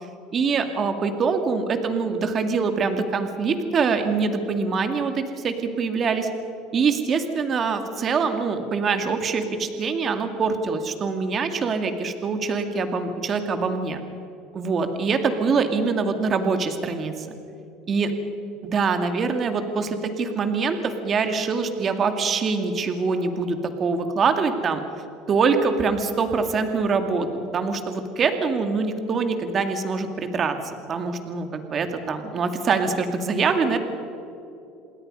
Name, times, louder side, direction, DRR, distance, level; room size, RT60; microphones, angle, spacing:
voice 1, 0.3-6.3 6.7-14.0 14.5-17.3 17.9-18.1 18.6-24.8 25.3-27.3 27.5-33.8, right 4 dB, 35° right, 7 dB, 2.2 m, -24 dB
27.5 x 20.5 x 5.5 m, 2.7 s
cardioid pair, 130°, 0 cm